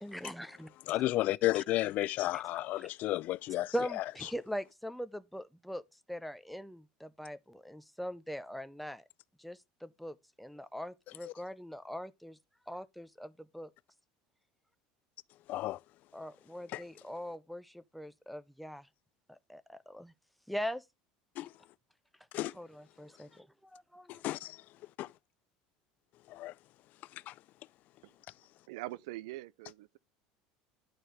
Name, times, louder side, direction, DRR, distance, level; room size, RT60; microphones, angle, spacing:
voice 1, 0.0-1.0 2.3-2.4 2.7-2.9 3.7-5.8 6.1-9.0 9.4-12.4 12.7-13.7 16.1-18.9 19.3-20.1 20.5-20.8 22.5-24.2, equal, ahead, 0.6 m, -41 dB
voice 2, 0.9-3.7 11.3-11.4 15.5-15.8 16.7-16.8 21.4-21.5 22.3-22.5 24.1-24.6 25.0-25.1 26.3-26.5 27.1-27.3, left 16 dB, 55° left, 0.3 m, -32 dB
voice 3, 28.7-30.0, right 17 dB, 80° right, 0.4 m, -43 dB
11.0 x 4.4 x 3.2 m
supercardioid pair, 105°, 3 cm